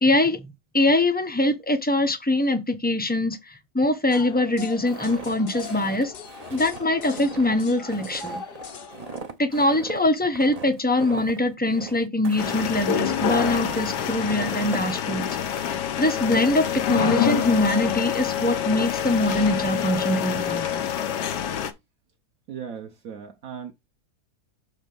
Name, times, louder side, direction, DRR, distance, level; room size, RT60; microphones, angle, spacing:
voice 1, 0.0-6.1 6.5-8.4 9.4-15.3 16.0-20.9, left 1 dB, 15° left, 0.4 m, -23 dB
sound 1, 4.1-9.2, left 5 dB, 50° left, 0.7 m, -39 dB
Walk footsteps, 4.9-14.8, right 4 dB, 35° right, 0.6 m, -40 dB
sound 2, 12.4-21.7, left 9 dB, 90° left, 1.5 m, -26 dB
voice 2, 22.5-23.7, right 7 dB, 60° right, 1.2 m, -37 dB
7.2 x 3.3 x 5.3 m
omnidirectional pair, 1.8 m